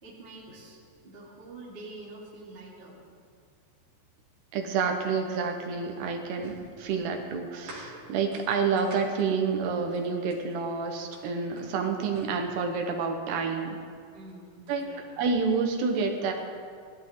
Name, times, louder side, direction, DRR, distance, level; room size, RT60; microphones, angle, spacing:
voice 1, 0.0-2.9 7.5-7.7 14.1-15.1, right 2 dB, 15° right, -7 dB, 2.5 m, -46 dB
voice 2, 4.5-13.8 14.7-14.9 15.2-16.3, right 5 dB, 70° right, 3 dB, 3.0 m, -29 dB
sound 1, 5.7-10.5 11.0-13.1 14.0-14.8, right 1 dB, 35° right, 4.9 m, -50 dB
18.5 x 13.5 x 3.8 m, 2.1 s
omnidirectional pair, 5.1 m